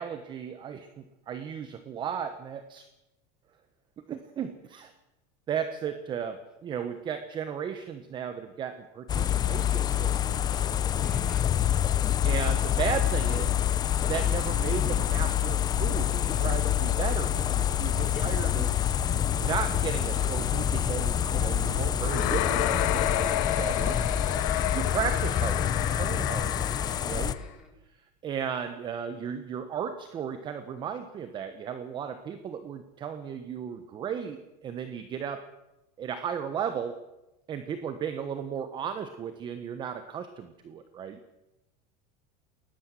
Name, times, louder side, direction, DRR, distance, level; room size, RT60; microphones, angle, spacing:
voice 1, 0.0-2.9 4.1-4.9 5.5-10.6 12.2-13.7 14.1-18.8 19.4-24.0 24.7-26.7 27.0-27.4 28.2-35.5 36.0-37.0 37.5-41.2, right 8 dB, 25° right, 10 dB, 1.2 m, -35 dB
sound 1, 9.1-27.3, left 10 dB, 25° left, 0.8 m, -27 dB
voice 2, 11.0-11.5 17.9-18.3 27.3-27.7, equal, 5° right, 1 dB, 5.5 m, -51 dB
sound 2, 22.0-27.4, left 12 dB, 70° left, 2.1 m, -31 dB
20.5 x 19.0 x 7.7 m, 0.99 s
supercardioid pair, 160°, 17 cm